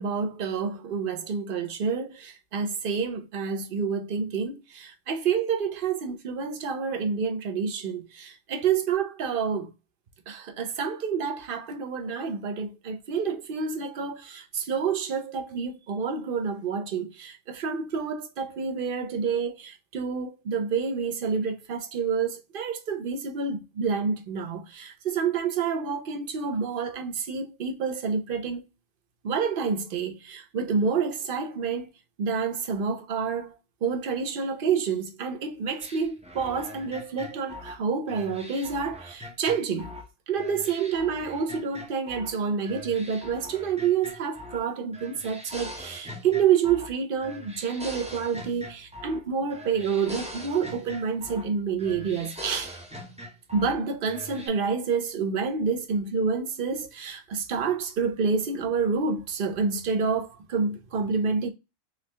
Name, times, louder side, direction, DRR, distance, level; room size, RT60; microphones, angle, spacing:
voice 1, 0.0-9.7 10.3-28.6 29.2-31.9 32.2-39.9 40.3-52.7 53.5-61.5, right 6 dB, 50° right, 0.8 m, -28 dB
sound 1, 35.8-40.1 40.4-42.3 42.6-44.7 44.9-47.0 47.2-49.2 49.5-51.5 51.8-53.8 54.1-54.5, left 1 dB, 10° right, 0.5 m, -42 dB
3.8 x 3.1 x 3.2 m
omnidirectional pair, 1.4 m